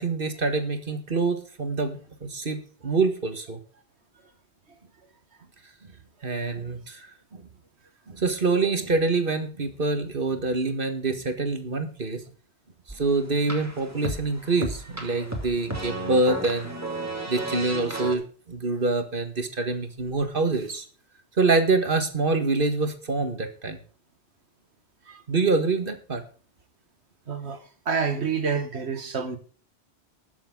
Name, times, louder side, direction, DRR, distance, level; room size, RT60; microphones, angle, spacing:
voice 1, 0.0-3.6 6.2-7.5 8.1-12.2 12.9-16.8 17.3-20.9 21.4-23.8 25.3-26.2, right 3 dB, 55° right, 1.9 m, -26 dB
sound 1, 12.9-18.1, right 2 dB, 15° right, 2.5 m, -34 dB
voice 2, 27.3-27.6 27.9-29.4, right 5 dB, 80° right, 1.9 m, -28 dB
20.0 x 7.3 x 3.9 m
omnidirectional pair, 1.1 m